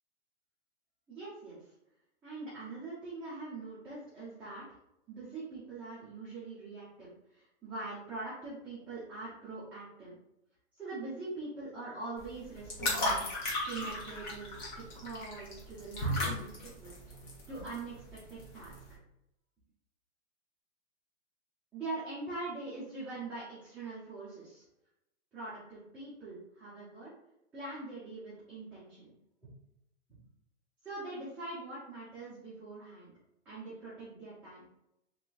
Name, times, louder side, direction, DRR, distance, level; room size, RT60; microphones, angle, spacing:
voice 1, 1.1-1.7 2.2-4.7 5.1-10.2 10.7-13.3 13.7-17.0 17.5-18.8 21.7-24.6 25.3-27.1 27.5-29.1 29.4-29.5 30.1-30.2 30.8-33.1 33.4-34.6, right 3 dB, 5° right, -11 dB, 0.4 m, -43 dB
sound 1, 12.2-18.9, left 1 dB, 40° left, 1.1 m, -36 dB
3.0 x 2.9 x 2.4 m, 0.85 s
hypercardioid pair, 140°, 36 cm